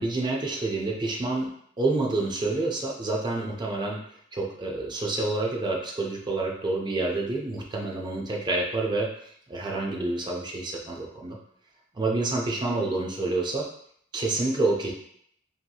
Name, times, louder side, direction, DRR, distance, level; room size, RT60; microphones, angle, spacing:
voice 1, 0.0-1.5 1.8-4.0 4.3-9.1 9.5-11.4 12.0-13.7 14.1-14.9, right 2 dB, 20° right, -1 dB, 0.4 m, -28 dB
2.8 x 2.6 x 2.3 m, 0.67 s
head